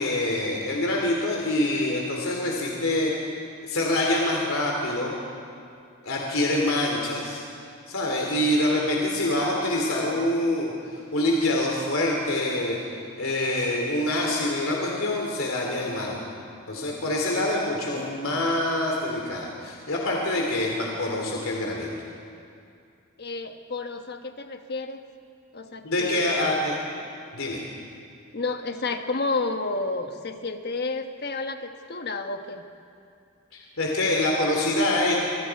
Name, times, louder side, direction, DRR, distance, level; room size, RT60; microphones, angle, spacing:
voice 1, 0.0-3.1 3.7-5.1 6.0-7.4 7.9-12.8 13.2-16.3 16.7-21.9 25.8-26.7 27.3-27.7 33.5-35.2, left 1 dB, 80° left, -1 dB, 2.9 m, -25 dB
voice 2, 17.9-18.3 23.2-25.0 25.5-26.5 28.3-32.6, left 3 dB, 50° left, 6 dB, 1.3 m, -31 dB
26.5 x 24.5 x 4.7 m, 2.4 s
head